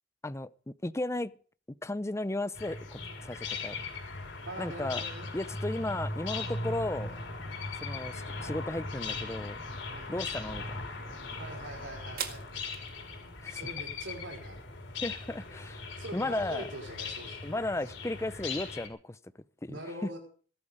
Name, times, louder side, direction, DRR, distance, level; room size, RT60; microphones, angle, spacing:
voice 1, 0.2-1.3 1.8-3.8 4.6-5.0 5.3-7.2 7.8-9.6 10.1-10.8 13.4-13.7 15.0-16.7 17.4-19.2 19.6-20.1, left 2 dB, 15° left, 0.6 m, -35 dB
sound 1, 2.5-18.9, left 3 dB, 85° left, 4.3 m, -39 dB
voice 2, 4.5-5.3 9.9-10.1 11.4-12.4 13.5-14.6 16.0-17.6 19.7-20.2, right 1 dB, 85° right, 4.8 m, -43 dB
sound 2, 9.7-17.9, right 8 dB, 55° right, 1.9 m, -49 dB
18.5 x 12.5 x 5.1 m
head